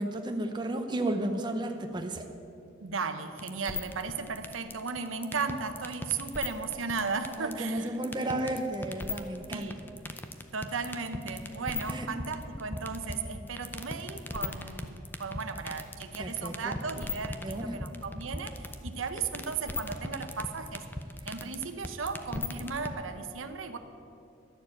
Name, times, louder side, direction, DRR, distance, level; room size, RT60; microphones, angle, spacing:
voice 1, 0.0-2.3 7.4-9.7 11.9-12.1 16.2-16.7 17.4-17.8, right 1 dB, 25° right, 5 dB, 0.7 m, -33 dB
voice 2, 2.8-8.0 9.5-9.8 10.5-20.8 21.2-23.8, right 5 dB, 90° right, 8 dB, 0.8 m, -36 dB
sound 1, 3.4-22.9, left 2 dB, 10° left, 0.5 m, -36 dB
12.5 x 6.7 x 8.5 m, 2.6 s
head